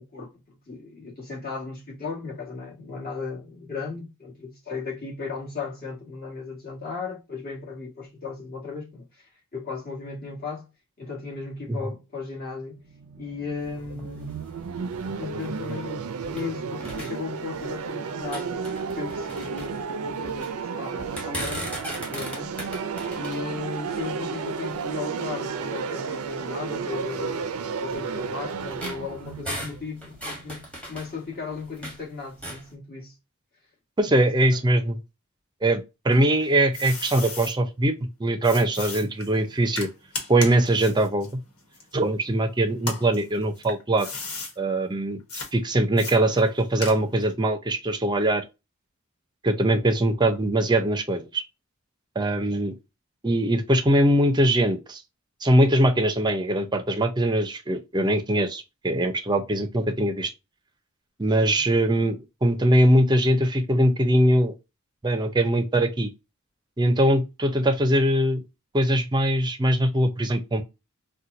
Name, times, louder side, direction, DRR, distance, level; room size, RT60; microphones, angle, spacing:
voice 1, 0.0-10.7 11.0-12.8 13.2-14.4 14.7-22.6 23.1-30.6 30.9-33.2 34.1-34.7 61.3-61.6, left 4 dB, 45° left, 1.6 m, -36 dB
sound 1, 12.8-30.7, right 5 dB, 85° right, 0.4 m, -33 dB
sound 2, 13.6-16.5 16.8-17.9 18.2-20.6 21.0-25.0 25.6-25.7 26.2-26.3 27.1-32.0 32.3-32.7, equal, 5° left, 1.1 m, -38 dB
voice 2, 34.0-35.0 35.6-37.9 38.2-39.9 40.3-41.3 41.9-44.1 44.6-45.2 45.5-48.4 49.4-51.4 52.2-52.7 53.2-55.0 55.4-60.3 61.2-64.5 65.0-66.1 66.8-68.4 68.7-70.6, right 1 dB, 20° right, 0.5 m, -22 dB
sound 3, 36.1-37.5 38.4-42.3 42.8-44.5 45.3-45.5 46.0-47.3, left 4 dB, 80° left, 1.3 m, -36 dB
4.2 x 2.2 x 2.5 m
head